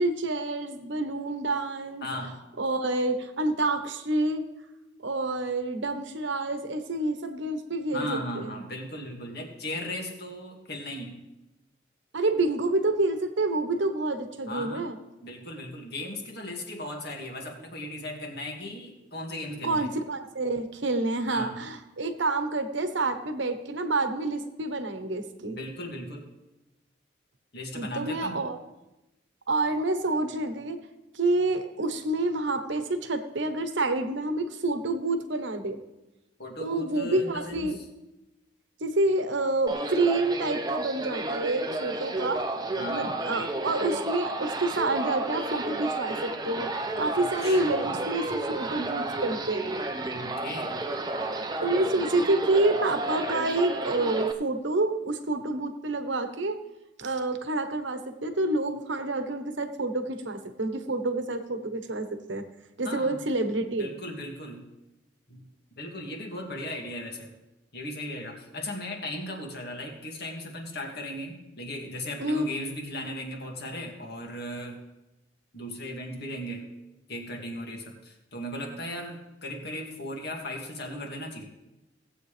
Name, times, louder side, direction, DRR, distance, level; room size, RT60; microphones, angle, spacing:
voice 1, 0.0-2.1 2.6-4.4 5.0-8.5 12.1-15.0 19.6-25.6 27.7-28.6 29.5-30.8 31.1-35.8 36.6-37.8 38.8-42.4 42.9-46.7 47.0-49.7 51.6-56.6 57.0-62.4 62.8-64.0 72.2-72.5, right 2 dB, 70° right, 8 dB, 1.1 m, -28 dB
voice 2, 2.0-2.4 7.9-11.2 14.5-14.8 15.2-19.9 21.3-21.6 25.5-26.3 27.5-28.4 36.4-37.7 42.8-43.1 47.2-48.0 50.1-50.8 62.8-63.2 63.8-64.6 65.3-65.4 65.8-67.3 67.7-74.8 75.5-76.7 77.1-81.5, left 1 dB, 55° left, 1 dB, 2.1 m, -37 dB
sound 1, 39.7-54.3, right 2 dB, 20° right, 0.6 m, -32 dB
17.5 x 8.2 x 3.4 m, 0.99 s
head